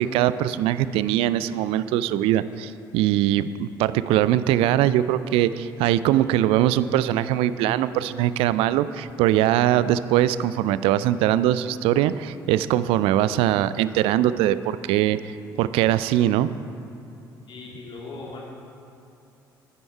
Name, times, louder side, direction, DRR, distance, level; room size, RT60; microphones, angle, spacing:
voice 1, 0.0-15.3 15.6-16.5, right 12 dB, 60° right, 15 dB, 0.4 m, -22 dB
voice 2, 17.5-18.4, left 3 dB, 50° left, -3 dB, 2.7 m, -38 dB
11.0 x 10.5 x 4.6 m, 2.6 s
figure-of-eight pair, 50°, 11 cm